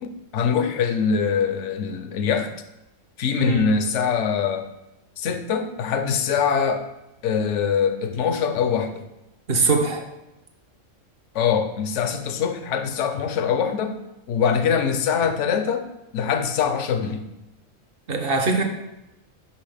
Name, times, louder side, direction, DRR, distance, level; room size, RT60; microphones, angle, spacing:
voice 1, 0.0-2.5 3.2-4.6 5.2-6.9 7.2-9.1 11.3-14.0 14.3-15.9 16.1-17.3, left 6 dB, 70° left, 8 dB, 0.9 m, -23 dB
voice 2, 9.5-10.1 18.1-18.6, right 3 dB, 55° right, 4 dB, 0.8 m, -22 dB
5.8 x 5.6 x 3.4 m, 0.93 s
omnidirectional pair, 1.4 m